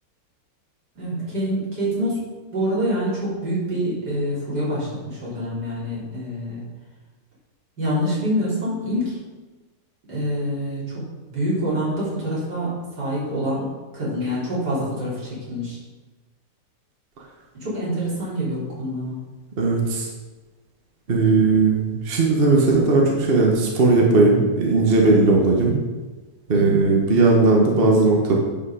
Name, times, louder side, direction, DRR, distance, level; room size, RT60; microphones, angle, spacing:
voice 1, 1.0-6.6 7.8-9.2 10.1-11.0 11.3-15.8 17.5-19.2 26.5-26.9, equal, 75° right, -8 dB, 4.2 m, -26 dB
voice 2, 19.6-20.1 21.1-25.8 26.5-28.4, right 3 dB, 35° right, -1 dB, 1.3 m, -17 dB
10.5 x 5.4 x 5.0 m, 1.2 s
omnidirectional pair, 1.8 m